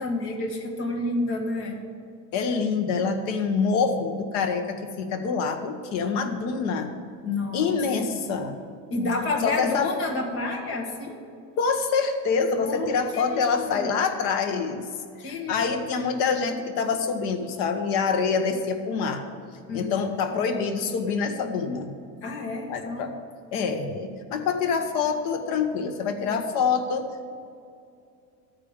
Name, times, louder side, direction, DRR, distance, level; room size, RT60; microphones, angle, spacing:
voice 1, 0.0-1.8 7.2-7.7 8.1-8.2 8.9-11.2 12.6-13.9 15.2-16.0 19.7-19.9 22.2-23.2, left 2 dB, 35° left, 1 dB, 1.6 m, -30 dB
voice 2, 2.3-6.9 7.5-8.6 9.4-9.9 11.6-14.9 15.2-19.2 19.7-21.9 22.7-23.1 23.5-27.3, left 5 dB, 50° left, 6 dB, 1.1 m, -26 dB
12.5 x 5.1 x 8.8 m, 2.4 s
cardioid pair, 180°, 37 cm